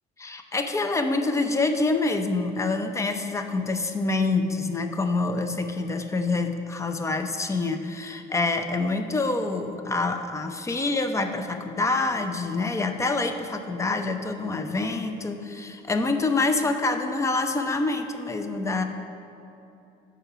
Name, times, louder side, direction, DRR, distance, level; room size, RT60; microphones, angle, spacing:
voice 1, 0.2-18.8, left 3 dB, 15° left, 7 dB, 0.5 m, -26 dB
6.9 x 4.9 x 5.6 m, 2.8 s
cardioid pair, 110°, 17 cm